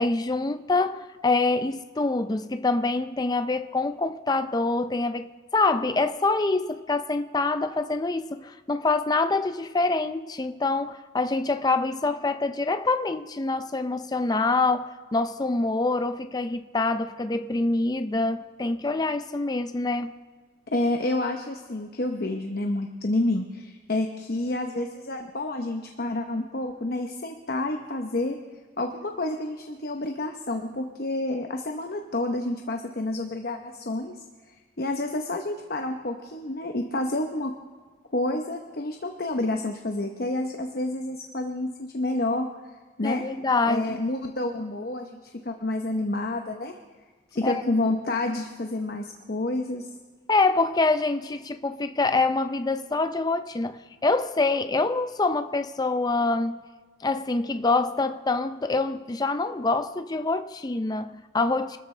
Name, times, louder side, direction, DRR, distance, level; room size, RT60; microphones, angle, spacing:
voice 1, 0.0-20.1 43.0-44.0 47.4-47.6 50.3-56.5 57.0-61.8, left 3 dB, 20° left, 0.5 m, -25 dB
voice 2, 20.7-28.4 28.8-34.2 34.8-37.5 38.1-42.5 43.0-43.3 43.7-46.7 47.3-49.9, left 2 dB, 55° left, 0.9 m, -29 dB
24.5 x 13.5 x 3.3 m
head